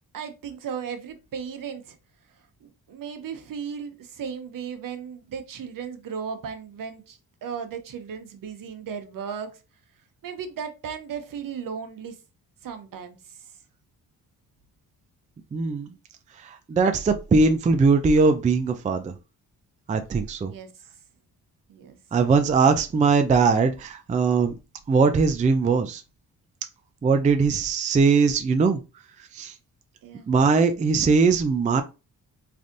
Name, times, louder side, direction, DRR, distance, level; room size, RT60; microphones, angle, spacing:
voice 1, 0.1-2.0 2.6-9.5 10.2-12.1 12.6-13.2 20.5-20.7 21.7-22.0 30.0-30.3, right 7 dB, 60° right, 0.8 m, -36 dB
voice 2, 15.5-15.9 16.4-19.1 19.9-20.5 22.1-24.6 24.9-26.0 27.0-28.8 29.3-29.5 30.3-31.8, right 4 dB, 20° right, 0.4 m, -20 dB
3.3 x 2.6 x 2.5 m
cardioid pair, 75°, 37 cm